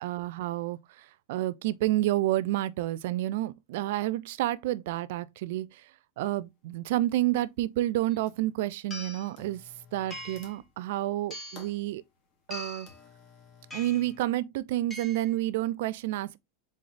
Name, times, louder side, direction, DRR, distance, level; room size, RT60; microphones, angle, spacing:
voice 1, 0.0-5.9 6.2-9.6 9.9-12.0 12.5-12.9 13.7-16.4, right 15 dB, 70° right, 0.4 m, -29 dB
sound 1, 6.4-6.5 7.1-7.6 7.9-8.6 9.3-14.2, left 5 dB, 50° left, 1.8 m, -55 dB
sound 2, 8.1-8.2 8.9-9.3 10.1-10.6 11.3-11.7 12.5-13.0 13.7-14.1 14.9-15.3, left 1 dB, 20° left, 1.9 m, -42 dB
3.9 x 3.8 x 3.3 m
hypercardioid pair, 105°, 0 cm